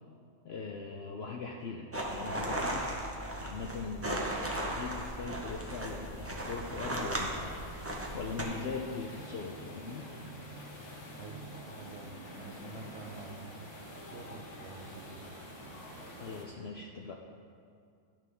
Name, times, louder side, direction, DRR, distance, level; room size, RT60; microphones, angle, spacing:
voice 1, 0.4-2.8 3.4-7.6 8.1-10.1 16.2-17.2, left 4 dB, 65° left, 1 dB, 0.6 m, -40 dB
sound 1, 1.9-8.4, right 1 dB, 15° right, 0.4 m, -36 dB
sound 2, 3.2-16.4, equal, 85° left, 1.9 m, -48 dB
voice 2, 11.8-12.2 12.4-13.7 14.1-15.3, right 4 dB, 60° right, 1 dB, 0.7 m, -48 dB
11.0 x 6.0 x 3.5 m, 2.3 s
omnidirectional pair, 1.6 m